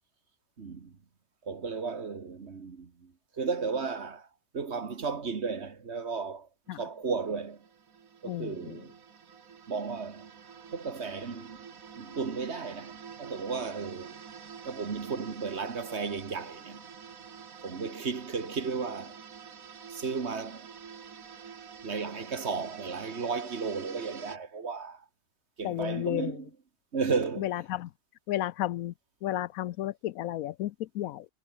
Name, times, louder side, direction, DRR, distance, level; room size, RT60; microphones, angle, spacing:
voice 1, 0.6-1.0 1.4-7.7 8.2-9.0 9.7-10.3 10.7-14.2 14.7-16.9 17.6-19.2 19.9-20.8 21.8-25.1 25.6-26.5 26.9-27.6, right 5 dB, 50° right, 1.8 m, -34 dB
sound 1, 6.7-24.4, right 6 dB, 75° right, 2.0 m, -48 dB
voice 2, 8.3-8.8 25.6-26.3 27.4-27.9 28.3-28.9 29.2-31.3, left 14 dB, 80° left, 1.0 m, -32 dB
omnidirectional pair, 1.5 m